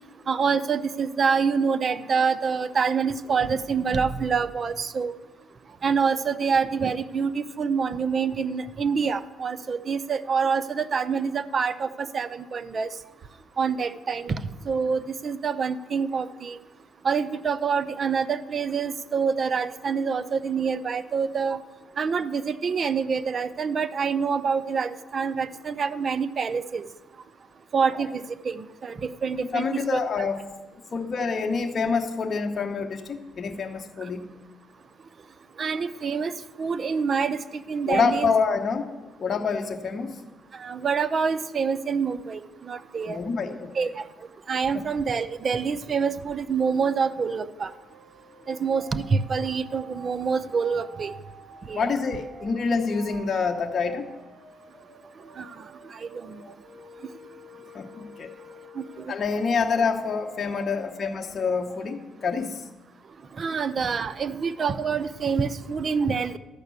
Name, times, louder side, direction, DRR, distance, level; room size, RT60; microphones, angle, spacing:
voice 1, 0.3-5.1 5.8-12.9 13.6-14.4 14.7-16.6 17.0-21.6 22.0-26.8 27.7-30.0 35.6-38.3 40.5-43.2 43.7-44.0 44.5-47.7 48.5-51.1 51.7-51.9 55.4-55.5 55.9-56.4 58.8-58.9 63.4-66.4, right 5 dB, 45° right, 13 dB, 0.6 m, -26 dB
voice 2, 29.5-30.4 30.9-34.3 37.9-38.9 39.2-40.2 43.1-43.8 44.7-44.8 51.7-54.1 57.7-58.3 59.1-62.6, left 5 dB, 45° left, 3 dB, 0.9 m, -27 dB
sound 1, 47.6-62.0, right 3 dB, 80° right, 1.9 m, -48 dB
12.0 x 5.8 x 8.2 m, 1.1 s
cardioid pair, 90°, 0 cm